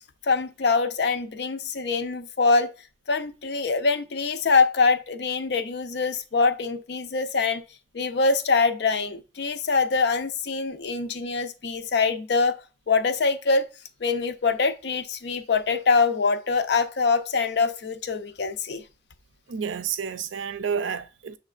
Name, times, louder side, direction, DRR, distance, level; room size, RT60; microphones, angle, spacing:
voice 1, 0.2-2.7 3.1-7.6 7.9-12.6 12.9-13.7 14.0-18.8, left 4 dB, 60° left, 0.5 m, -24 dB
voice 2, 19.5-21.4, right 6 dB, 80° right, 0.4 m, -30 dB
7.0 x 3.2 x 2.4 m
head